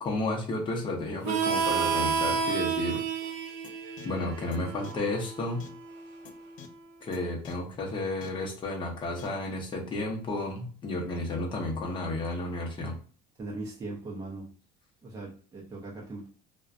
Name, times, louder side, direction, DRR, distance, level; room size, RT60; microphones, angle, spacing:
voice 1, 0.0-3.0 4.0-5.7 7.0-13.0, left 2 dB, 30° left, 0 dB, 0.7 m, -32 dB
Harmonica, 1.2-6.5, right 6 dB, 80° right, 0.4 m, -31 dB
sound 1, 3.6-3.7 4.0-4.1 4.5-4.6 4.8-4.9 5.6-5.7 6.2-6.3 6.6-6.7 7.1-7.2 7.4-7.5 8.2-8.3 9.2-9.3, left 8 dB, 50° left, 0.4 m, -45 dB
voice 2, 13.4-14.5 15.0-16.3, right 2 dB, 20° right, -3 dB, 0.5 m, -39 dB
2.5 x 2.1 x 2.4 m, 0.41 s
cardioid pair, 140°, 17 cm